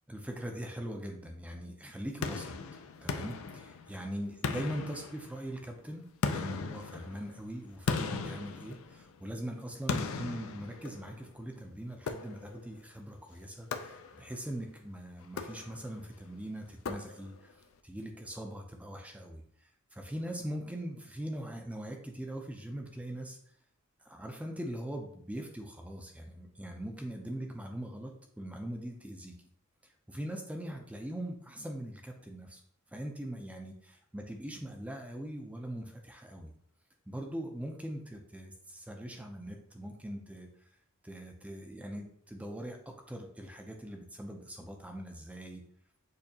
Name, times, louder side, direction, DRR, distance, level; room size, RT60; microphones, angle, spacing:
voice 1, 0.1-2.5 3.0-23.4 24.0-28.1 28.4-29.3 30.1-32.6 32.9-36.5 37.1-40.5 41.0-45.6, equal, 5° right, 3 dB, 0.4 m, -41 dB
sound 1, 2.2-4.0 4.4-5.6 6.2-9.2 9.9-11.3 12.1-12.7 13.7-14.4 15.2-16.0 16.8-17.5, left 5 dB, 65° left, 0.4 m, -37 dB
6.5 x 2.8 x 2.7 m, 0.66 s
head